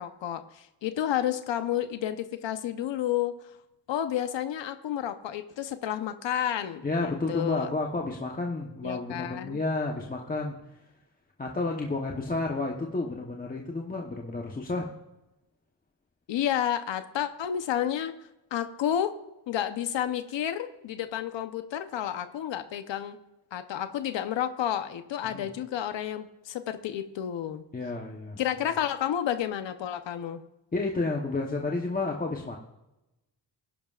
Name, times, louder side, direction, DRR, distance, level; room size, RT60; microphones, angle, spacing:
voice 1, 0.0-3.5 3.9-7.7 8.8-9.6 16.3-18.1 18.5-19.1 19.5-23.2 23.5-27.6 28.4-30.4, left 10 dB, 80° left, 9 dB, 0.9 m, -31 dB
voice 2, 6.8-10.6 11.4-14.9 25.2-25.5 27.7-28.4 30.7-32.6, left 3 dB, 20° left, -1 dB, 1.0 m, -31 dB
22.5 x 11.0 x 2.5 m, 0.96 s
wide cardioid pair, 155°, 44 cm